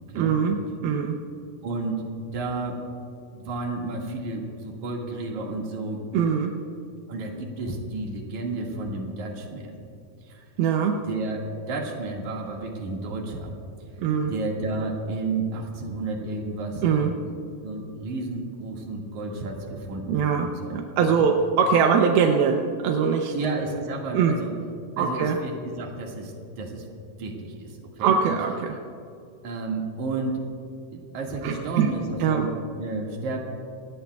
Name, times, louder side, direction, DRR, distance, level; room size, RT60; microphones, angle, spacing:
voice 1, 0.2-1.2 6.1-6.5 10.6-11.0 14.0-14.3 16.8-17.1 20.1-23.3 24.1-24.4 25.0-25.4 28.0-28.8 31.4-31.9 32.2-32.5, right 6 dB, 80° right, 3 dB, 2.6 m, -22 dB
voice 2, 1.6-2.0 2.3-2.8 3.3-6.0 7.1-9.7 10.2-10.5 11.0-13.5 14.3-16.8 17.2-17.3 17.6-20.8 21.1-21.2 23.3-24.5 25.0-26.9 27.2-28.1 29.4-30.4 30.9-33.4, right 3 dB, 55° right, 0 dB, 3.0 m, -32 dB
27.0 x 18.5 x 2.3 m, 2.5 s
omnidirectional pair, 4.5 m